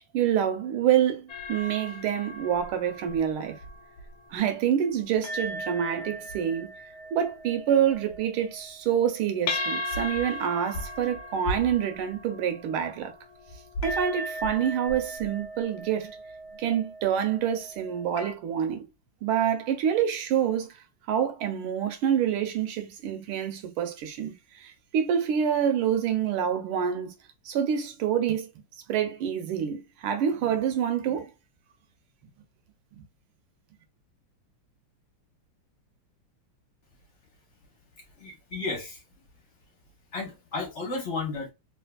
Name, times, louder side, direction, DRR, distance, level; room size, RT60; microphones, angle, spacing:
voice 1, 0.1-3.6 4.3-6.7 7.1-13.1 13.8-16.2 16.6-18.8 19.2-20.7 21.1-24.3 24.6-27.1 27.4-28.5 28.9-31.3, right 9 dB, 80° right, 1.5 m, -27 dB
sound 1, 1.3-4.5 5.0-18.3, left 1 dB, 90° left, 0.8 m, -37 dB
voice 2, 38.1-39.0 40.1-41.5, left 3 dB, 45° left, 1.1 m, -33 dB
3.4 x 2.9 x 2.2 m
omnidirectional pair, 2.3 m